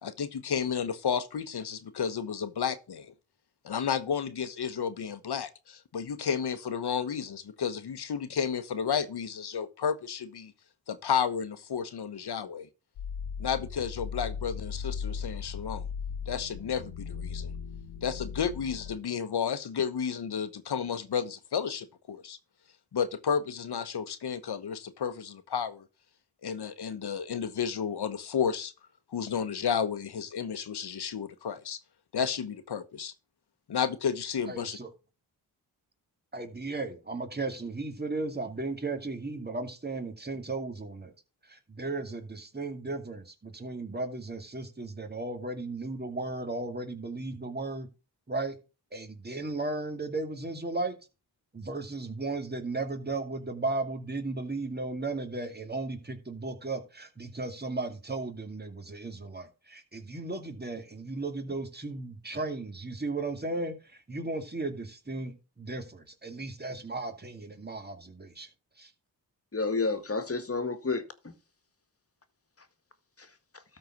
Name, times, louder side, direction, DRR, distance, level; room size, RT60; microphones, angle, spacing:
voice 1, 0.0-3.1 3.6-10.5 10.9-12.7 13.4-15.9 16.3-17.5 18.0-22.4 22.9-25.9 26.4-28.7 29.1-31.8 32.1-33.1 33.7-34.8, left 7 dB, 60° left, 1.3 m, -32 dB
sound 1, 13.0-19.0, left 6 dB, 90° left, 1.2 m, -37 dB
voice 2, 34.5-34.9 36.3-41.1 41.5-47.9 48.3-48.6 48.9-50.9 51.5-68.5 68.8-68.9, right 3 dB, 20° right, 2.4 m, -35 dB
voice 3, 69.5-71.3 73.2-73.6, left 3 dB, 30° left, 1.9 m, -31 dB
13.0 x 4.6 x 6.0 m
cardioid pair, 50°, 44 cm